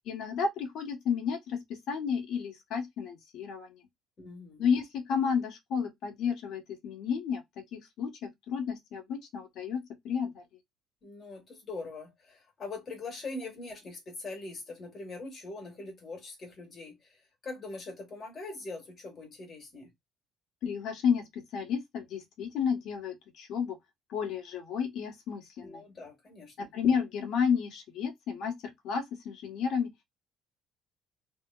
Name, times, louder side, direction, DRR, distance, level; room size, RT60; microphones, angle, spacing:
voice 1, 0.0-3.8 4.6-7.4 7.7-10.4 20.6-23.8 24.1-25.8 26.6-28.6 28.8-29.9, left 6 dB, 60° left, 1.4 m, -31 dB
voice 2, 4.2-4.6 11.0-19.9 25.6-26.7, left 3 dB, 30° left, 1.9 m, -42 dB
3.3 x 2.9 x 2.4 m
cardioid pair, 155°, 0 cm